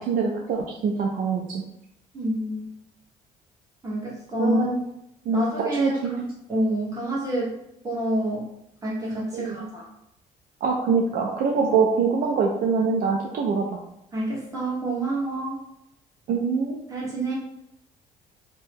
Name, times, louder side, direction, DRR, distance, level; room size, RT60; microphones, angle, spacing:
voice 1, 0.0-1.6 4.4-4.8 5.3-6.2 9.3-9.7 10.6-13.8 16.3-16.8, right 5 dB, 55° right, 0 dB, 0.4 m, -24 dB
voice 2, 2.1-2.7 3.8-4.6 5.3-7.5 7.8-8.5 8.8-9.8 14.1-15.6 16.9-17.3, right 1 dB, 20° right, -6 dB, 1.2 m, -28 dB
2.7 x 2.1 x 3.3 m, 0.82 s
cardioid pair, 110°, 17 cm